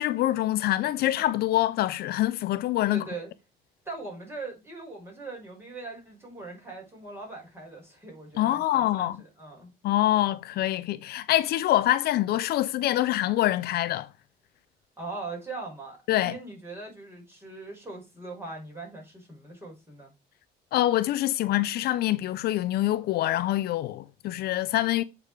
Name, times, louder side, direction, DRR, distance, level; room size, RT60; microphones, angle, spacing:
voice 1, 0.0-3.0 8.4-9.2 9.8-14.1 16.1-16.4 20.7-25.0, left 14 dB, 70° left, 0.5 m, -25 dB
voice 2, 2.9-3.3 3.9-9.7 15.0-20.1, right 3 dB, 15° right, 5.7 m, -40 dB
8.5 x 4.8 x 4.9 m
cardioid pair, 110°, 17 cm